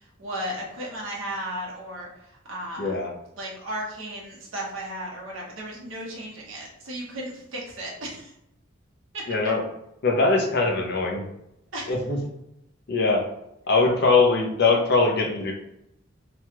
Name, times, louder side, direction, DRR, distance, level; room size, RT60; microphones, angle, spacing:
voice 1, 0.2-2.1 2.5-3.0 3.4-8.3 9.1-9.2 11.7-11.9, right 1 dB, 65° right, -3 dB, 1.0 m, -34 dB
voice 2, 2.8-3.1 9.3-9.6 10.0-11.3 11.9-12.2 12.9-13.3 13.7-15.5, left 3 dB, 50° left, 1 dB, 0.6 m, -21 dB
3.0 x 2.3 x 2.9 m, 0.81 s
head